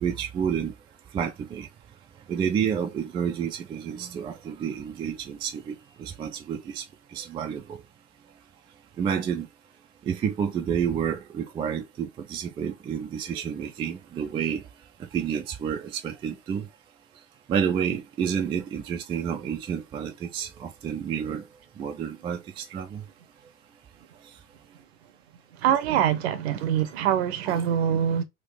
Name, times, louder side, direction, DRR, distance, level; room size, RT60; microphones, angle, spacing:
voice 1, 0.0-0.7 1.1-1.7 2.3-6.8 7.1-7.8 9.0-9.5 10.1-14.6 15.0-16.7 17.5-21.4 21.8-23.0 27.5-27.6, right 8 dB, 15° right, 0.4 m, -29 dB
voice 2, 25.6-28.2, right 9 dB, 55° right, 0.8 m, -24 dB
3.7 x 2.6 x 3.6 m
figure-of-eight pair, 90°, 39 cm